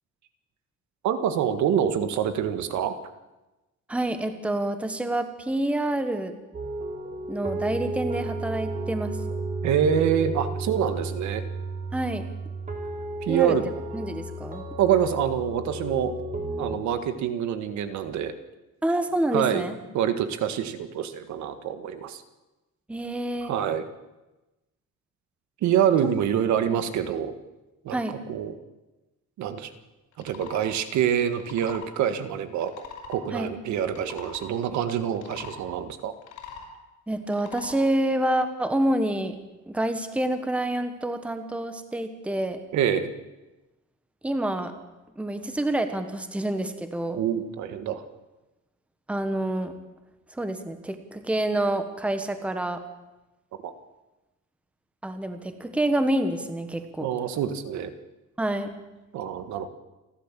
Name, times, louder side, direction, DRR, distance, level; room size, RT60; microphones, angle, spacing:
voice 1, 1.0-3.0 9.6-11.4 13.2-13.7 14.8-16.1 16.6-18.3 19.3-19.7 19.9-22.2 23.4-23.8 25.6-27.3 27.8-28.5 29.4-29.7 30.2-32.7 33.1-36.1 42.7-43.1 47.2-48.0 53.6-53.7 57.0-57.9 59.1-59.7, right 9 dB, 75° right, 9 dB, 1.7 m, -26 dB
voice 2, 3.9-6.3 7.3-9.2 11.9-12.3 13.3-13.5 13.9-14.6 18.8-19.8 22.9-23.5 26.7-26.8 27.9-28.2 33.3-33.5 37.1-39.4 39.7-42.6 44.2-44.7 45.2-47.2 49.1-49.7 50.3-52.8 55.0-57.1 58.4-58.7, right 1 dB, 5° right, 8 dB, 1.2 m, -27 dB
sound 1, 6.5-16.8, right 2 dB, 25° right, 2.8 m, -33 dB
sound 2, 30.1-30.6 31.3-31.9 32.6-33.2 33.8-34.5 35.1-35.6 36.1-36.7 37.3-37.8, left 6 dB, 80° left, 5.5 m, -42 dB
29.0 x 12.0 x 7.6 m, 1.1 s
cardioid pair, 175°, 29 cm